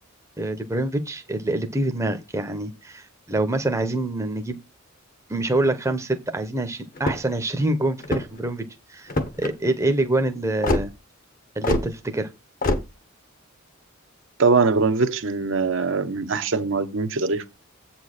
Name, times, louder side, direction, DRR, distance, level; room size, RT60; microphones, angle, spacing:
voice 1, 0.4-4.6 5.3-9.1 9.4-10.9 11.6-12.3, right 2 dB, 15° right, 0.9 m, -25 dB
sound 1, 7.0-7.4 8.0-8.5 9.1-9.5 10.6-10.9 11.6-11.9 12.6-12.8, left 2 dB, 45° left, 1.2 m, -24 dB
voice 2, 14.4-17.5, right 4 dB, 65° right, 0.9 m, -22 dB
8.0 x 4.3 x 6.5 m
head